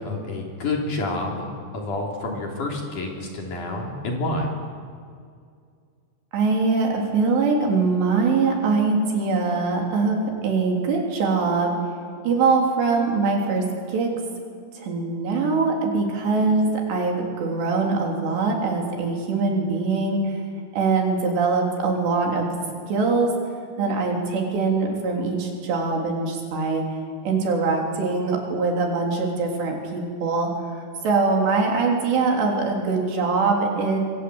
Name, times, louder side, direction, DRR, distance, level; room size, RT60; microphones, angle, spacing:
voice 1, 0.0-4.5, left 2 dB, 50° left, 0 dB, 4.4 m, -28 dB
voice 2, 6.3-11.8 12.3-14.1 14.8-20.2 20.7-22.5 22.9-23.3 23.8-26.8 27.2-30.5 31.0-34.0, right 4 dB, 75° right, 1 dB, 5.6 m, -22 dB
27.0 x 23.5 x 8.0 m, 2.2 s
omnidirectional pair, 5.0 m